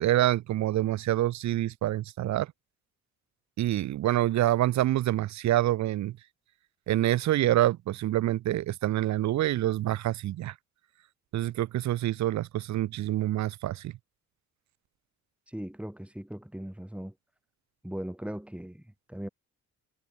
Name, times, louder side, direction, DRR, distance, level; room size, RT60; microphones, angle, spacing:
voice 1, 0.0-2.5 3.6-6.2 6.9-10.5 11.3-13.9, right 14 dB, 65° right, 0.7 m, -26 dB
voice 2, 15.5-17.1 17.8-19.3, right 1 dB, 5° right, 5.5 m, -39 dB
cardioid pair, 90°, 30 cm